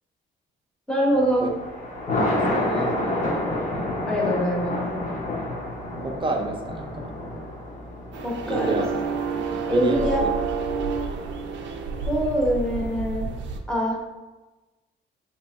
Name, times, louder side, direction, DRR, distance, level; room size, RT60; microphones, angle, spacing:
voice 1, 0.9-1.5 4.1-4.8 8.2-8.8 9.7-10.3 12.1-13.3 13.7-14.0, equal, 5° left, -3 dB, 0.9 m, -24 dB
Thunder, 1.2-12.6, left 1 dB, 40° left, 0.8 m, -30 dB
voice 2, 2.2-3.0 6.0-6.9 8.5-8.9 9.7-10.0, right 2 dB, 25° right, 1 dB, 0.6 m, -28 dB
sound 1, 8.1-13.6, right 5 dB, 70° right, 0.5 m, -29 dB
2.8 x 2.6 x 4.2 m, 1.1 s
cardioid pair, 90°, 20 cm